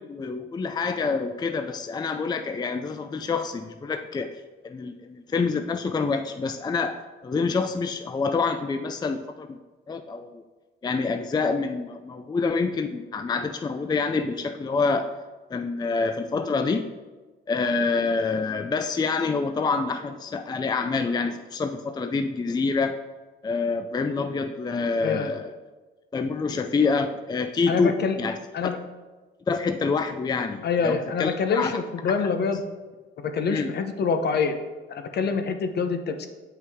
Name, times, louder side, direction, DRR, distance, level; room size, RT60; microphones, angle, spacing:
voice 1, 0.0-4.3 4.6-9.6 9.9-10.4 10.8-15.1 15.5-16.9 17.5-23.0 23.4-25.6 26.1-28.7 29.5-31.7 32.2-32.3 33.5-33.7, left 4 dB, 20° left, 7 dB, 0.4 m, -27 dB
voice 2, 27.7-28.2 28.5-28.8 30.6-32.6 33.2-34.5 34.9-36.3, left 5 dB, 55° left, 7 dB, 0.8 m, -26 dB
7.7 x 5.7 x 3.6 m, 1.3 s
cardioid pair, 90°, 20 cm